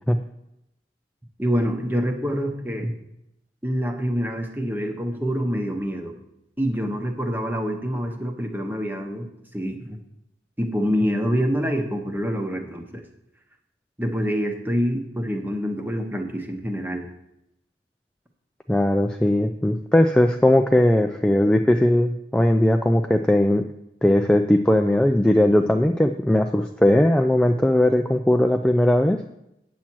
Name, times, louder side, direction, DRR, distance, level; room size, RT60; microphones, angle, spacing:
voice 1, 1.4-2.9 3.6-6.1 6.6-9.3 9.5-10.0 10.6-13.0 14.0-17.1, equal, 10° right, 4 dB, 1.0 m, -26 dB
voice 2, 18.7-23.7 24.0-29.2, left 1 dB, 5° left, 4 dB, 0.3 m, -19 dB
8.9 x 7.3 x 4.5 m, 0.83 s
head